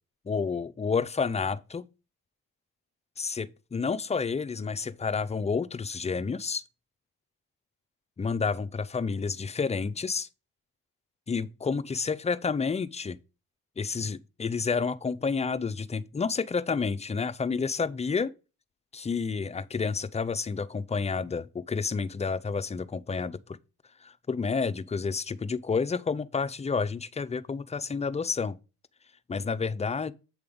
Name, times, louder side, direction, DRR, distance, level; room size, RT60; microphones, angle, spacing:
voice 1, 0.3-1.8 3.2-6.6 8.2-10.3 11.3-13.2 13.8-18.3 18.9-23.6 24.0-28.6 29.3-30.1, left 5 dB, 15° left, 0.4 m, -30 dB
7.7 x 3.4 x 5.2 m
supercardioid pair, 55°, 40 cm